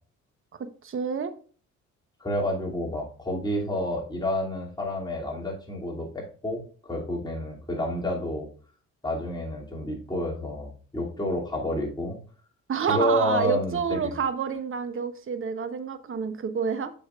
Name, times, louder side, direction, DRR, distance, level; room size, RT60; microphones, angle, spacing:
voice 1, 0.6-1.3 12.7-16.9, right 6 dB, 45° right, 10 dB, 1.0 m, -28 dB
voice 2, 2.2-8.5 9.0-12.2 12.9-14.1, left 1 dB, 15° left, -2 dB, 2.6 m, -29 dB
8.1 x 6.2 x 2.4 m, 0.42 s
cardioid pair, 90°, 30 cm